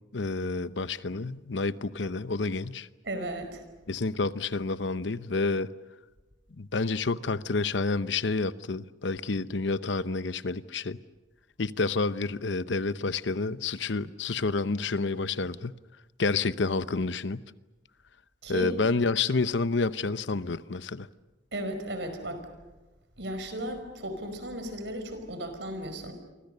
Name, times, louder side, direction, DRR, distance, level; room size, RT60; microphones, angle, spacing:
voice 1, 0.0-2.9 3.9-5.7 6.6-11.0 11.6-15.7 16.2-17.4 18.5-21.1, left 3 dB, 70° left, 0.8 m, -29 dB
voice 2, 3.0-3.6 18.4-18.7 21.5-22.4 23.2-26.1, right 1 dB, 70° right, 5.2 m, -35 dB
30.0 x 24.5 x 6.8 m
head